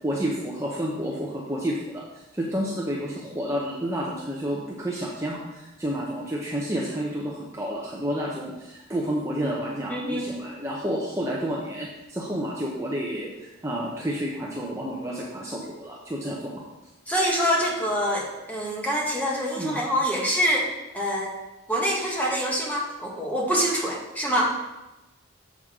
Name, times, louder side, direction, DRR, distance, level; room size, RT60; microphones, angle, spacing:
voice 1, 0.0-2.0 2.3-16.6 19.5-19.8, equal, 15° right, -4 dB, 0.7 m, -30 dB
voice 2, 9.9-10.3 17.1-20.7 20.9-21.3 21.7-24.5, equal, 10° left, -3 dB, 1.2 m, -25 dB
7.0 x 6.1 x 3.7 m, 1.0 s
head